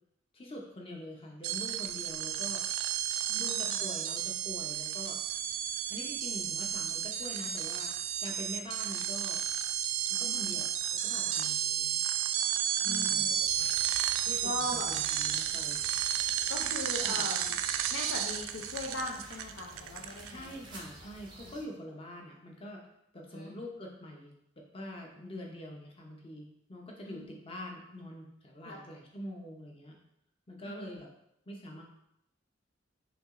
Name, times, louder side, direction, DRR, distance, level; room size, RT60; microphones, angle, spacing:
voice 1, 0.3-2.6 3.4-5.2 5.9-9.4 10.1-12.0 12.8-13.3 14.2-16.0 16.6-16.8 17.0-17.3 20.1-22.8 23.1-24.3 24.7-30.0 30.5-31.1 31.5-31.8, left 1 dB, 30° left, 0 dB, 0.7 m, -44 dB
sound 1, 1.4-20.6, right 10 dB, 90° right, 0.3 m, -32 dB
voice 2, 3.3-3.8 10.3-10.6 12.9-13.5 14.4-14.9 16.5-17.6 17.9-20.5 21.0-21.1 21.4-21.5 23.3-23.6 27.1-27.3 28.6-28.8 30.7-31.1, left 2 dB, 70° left, -1 dB, 0.5 m, -40 dB
sound 2, 13.4-21.6, right 2 dB, 25° right, 0.6 m, -51 dB
5.8 x 2.8 x 2.5 m, 0.79 s
head